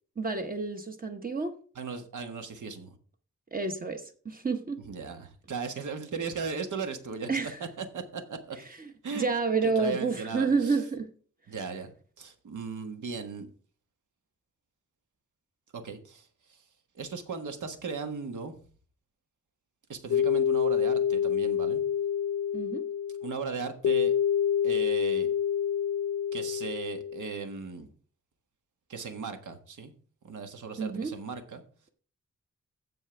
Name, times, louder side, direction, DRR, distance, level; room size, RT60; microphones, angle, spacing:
voice 1, 0.2-1.5 3.5-4.8 7.3-7.6 8.8-8.9 9.1-11.1 22.5-22.9 30.8-31.1, right 4 dB, 30° right, 5 dB, 0.9 m, -29 dB
voice 2, 1.7-2.9 4.8-7.3 7.6-8.6 9.0-9.3 9.6-10.8 11.5-11.9 12.2-13.5 15.7-16.6 16.9-18.6 19.9-21.8 23.2-24.1 24.6-25.3 26.3-27.9 28.9-29.9 30.2-31.6, right 5 dB, 80° right, 6 dB, 1.6 m, -37 dB
sound 1, 20.1-27.4, left 8 dB, 60° left, 0.4 m, -27 dB
15.5 x 5.7 x 3.4 m, 0.42 s
wide cardioid pair, 150°, 30 cm